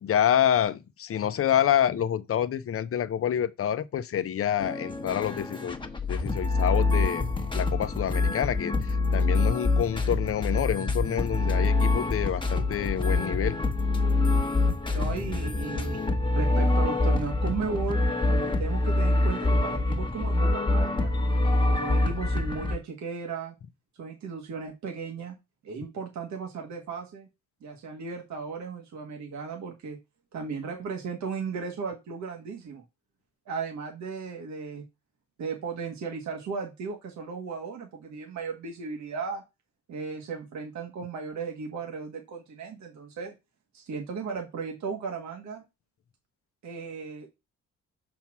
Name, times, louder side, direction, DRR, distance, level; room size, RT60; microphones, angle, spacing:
voice 1, 0.0-5.8 6.1-7.3 7.5-13.6, left 10 dB, 50° left, 0.7 m, -27 dB
sound 1, 4.6-22.8, left 2 dB, 15° left, 1.1 m, -25 dB
voice 2, 14.9-16.0 16.3-21.1 21.7-23.5 24.0-25.3 25.6-27.3 27.6-30.0 30.3-32.8 33.5-34.8 35.4-39.4 39.9-43.3 43.7-45.6 46.6-47.3, right 5 dB, 65° right, 1.6 m, -35 dB
5.8 x 4.3 x 6.0 m
cardioid pair, 90°, 30 cm